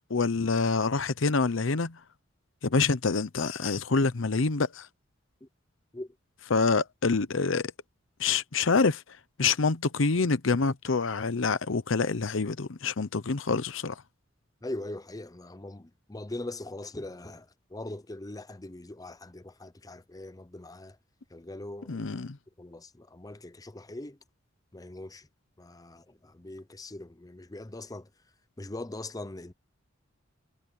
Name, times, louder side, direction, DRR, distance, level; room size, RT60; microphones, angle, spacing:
voice 1, 0.1-2.0 2.6-4.9 6.5-7.7 8.2-9.0 9.4-13.9 21.9-22.4, left 4 dB, 70° left, 0.8 m, -26 dB
voice 2, 14.6-21.0 21.3-22.0 22.6-24.2 24.7-25.3 25.6-28.1 28.6-29.5, left 2 dB, 20° left, 0.7 m, -41 dB
head